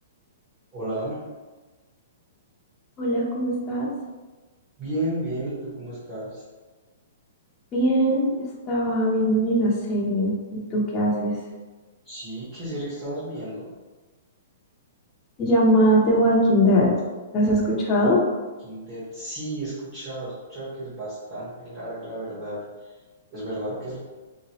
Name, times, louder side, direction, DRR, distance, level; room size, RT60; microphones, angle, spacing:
voice 1, 0.7-1.2 4.8-6.4 12.0-13.7 18.6-22.9 23.3-24.0, right 1 dB, 25° right, -12 dB, 1.2 m, -33 dB
voice 2, 3.0-3.9 7.7-11.3 15.4-16.9 17.3-18.2, equal, 20° left, -5 dB, 0.6 m, -21 dB
3.2 x 2.9 x 2.9 m, 1.2 s
hypercardioid pair, 165°, 0 cm